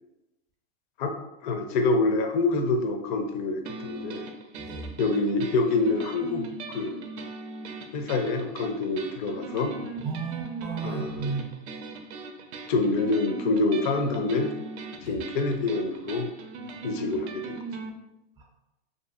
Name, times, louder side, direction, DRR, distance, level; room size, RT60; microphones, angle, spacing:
voice 1, 1.4-4.2 5.0-7.0 7.9-9.8 10.8-11.3 12.7-14.5 15.0-16.3 16.8-17.6, left 3 dB, 50° left, 6 dB, 0.4 m, -26 dB
sound 1, 3.7-17.9, right 3 dB, 85° right, 0.5 m, -40 dB
voice 2, 4.6-4.9 10.0-11.5 15.0-15.1 18.4-18.5, right 5 dB, 15° right, -2 dB, 0.4 m, -33 dB
2.6 x 2.6 x 2.4 m, 0.92 s
supercardioid pair, 140°, 33 cm